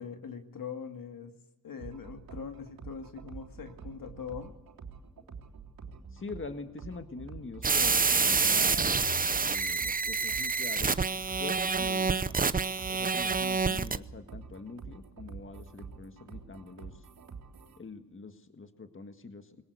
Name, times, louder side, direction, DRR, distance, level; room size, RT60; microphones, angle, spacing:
voice 1, 0.0-1.3 1.6-4.5, left 6 dB, 70° left, 6 dB, 2.2 m, -42 dB
sound 1, 1.8-17.8, right 5 dB, 85° right, 3.6 m, -47 dB
voice 2, 6.1-11.1 11.4-12.2 12.9-17.1 17.8-19.6, left 4 dB, 35° left, 7 dB, 1.7 m, -44 dB
sound 2, 7.6-14.0, right 4 dB, 25° right, 0.7 m, -27 dB
21.5 x 18.0 x 8.2 m, 0.96 s
cardioid pair, 75°, 35 cm